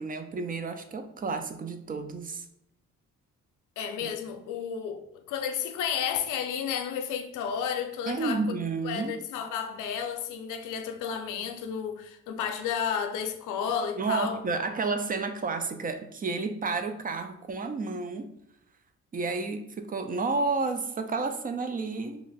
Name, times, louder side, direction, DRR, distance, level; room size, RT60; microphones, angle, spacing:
voice 1, 0.0-2.4 4.0-4.1 8.1-9.1 14.0-18.3 19.1-22.2, right 4 dB, 30° right, 0.4 m, -31 dB
voice 2, 3.8-8.4 8.8-14.4, left 7 dB, 85° left, 0.5 m, -32 dB
2.9 x 2.5 x 3.9 m
cardioid pair, 90°, 30 cm